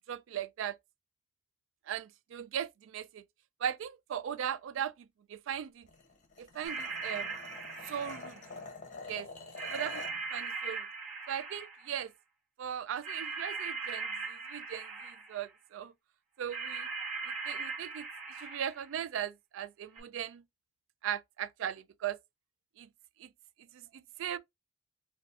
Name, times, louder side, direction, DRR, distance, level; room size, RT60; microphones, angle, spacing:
voice 1, 0.1-0.8 1.9-3.2 3.6-5.9 6.4-7.3 7.9-8.4 9.1-9.3 9.7-10.0 10.3-10.9 11.3-12.1 12.6-15.9 16.4-16.9 17.5-18.0 18.4-20.4 21.0-22.2 22.8-22.9 23.2-23.3 23.7-24.4, right 9 dB, 70° right, 0.3 m, -38 dB
sound 1, 5.9-10.2, left 3 dB, 40° left, 0.7 m, -47 dB
sound 2, 6.6-8.6 9.6-12.0 13.0-15.4 16.5-18.9 19.9-20.0, right 4 dB, 35° right, 1.1 m, -39 dB
4.0 x 2.3 x 2.4 m
head